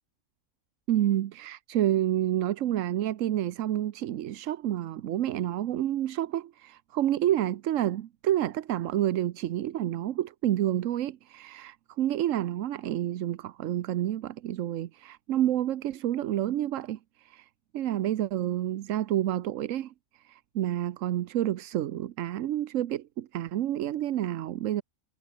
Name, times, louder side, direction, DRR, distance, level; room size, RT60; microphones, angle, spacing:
voice 1, 0.9-24.8, right 12 dB, 85° right, 1.1 m, -29 dB
omnidirectional pair, 1.3 m